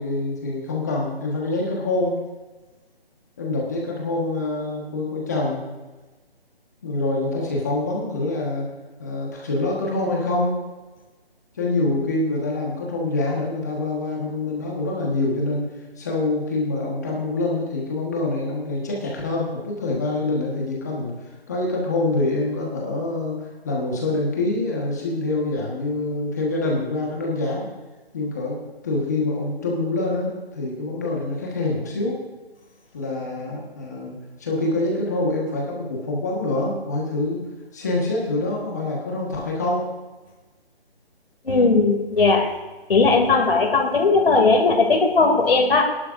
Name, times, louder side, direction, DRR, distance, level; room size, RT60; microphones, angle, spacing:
voice 1, 0.0-2.2 3.4-5.7 6.8-8.7 9.0-10.6 11.5-15.7 16.0-21.1 21.5-27.7 28.1-28.6 28.8-32.2 32.9-34.1 34.4-37.4 37.7-39.9, left 2 dB, 15° left, -2 dB, 1.3 m, -25 dB
voice 2, 41.4-42.5 42.9-45.8, left 3 dB, 65° left, 3 dB, 2.7 m, -17 dB
21.0 x 11.0 x 2.6 m, 1.2 s
hypercardioid pair, 175°, 31 cm